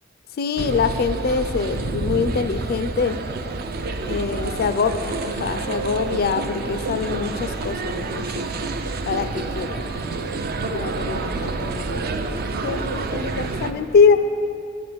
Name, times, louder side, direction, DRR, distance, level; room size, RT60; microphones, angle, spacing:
voice 1, 0.4-3.2 4.1-8.5 9.0-9.9 10.6-12.0 12.3-14.2, left 5 dB, 55° left, 10 dB, 0.3 m, -24 dB
sound 1, 0.6-13.7, right 3 dB, 55° right, 0.5 m, -28 dB
10.5 x 4.2 x 7.6 m, 2.6 s
head